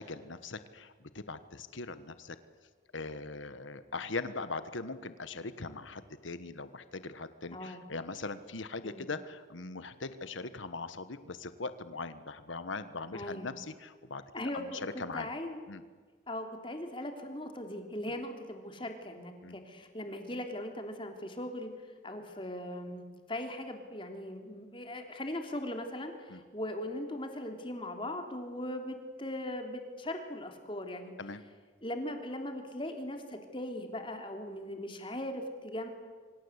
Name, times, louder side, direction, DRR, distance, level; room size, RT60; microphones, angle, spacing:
voice 1, 0.0-2.4 2.9-14.2 14.5-15.3 15.7-15.8 19.4-19.6 26.3-26.4 31.2-31.4, left 3 dB, 80° left, 12 dB, 1.4 m, -40 dB
voice 2, 7.5-7.8 8.8-9.1 13.1-13.5 14.3-15.6 16.3-21.7 22.0-23.0 23.3-31.1 31.8-35.9, left 1 dB, 25° left, 4 dB, 3.2 m, -39 dB
27.0 x 25.0 x 8.2 m, 1.5 s
head